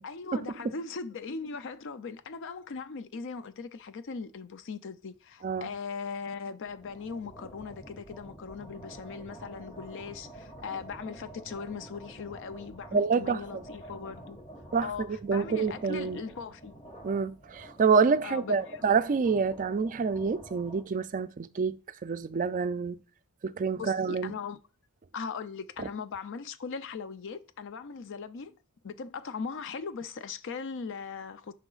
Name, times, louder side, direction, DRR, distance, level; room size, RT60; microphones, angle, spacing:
voice 1, 0.0-14.4 14.8-16.7 18.2-18.8 23.8-24.6 25.1-28.6 28.8-31.5, left 5 dB, 60° left, 0.5 m, -39 dB
sound 1, 6.6-20.8, right 1 dB, 25° left, 1.6 m, -48 dB
voice 2, 12.9-13.6 14.7-16.2 17.0-23.0 23.4-24.3 25.8-25.9, right 5 dB, 35° right, 0.4 m, -27 dB
9.8 x 5.7 x 2.4 m
head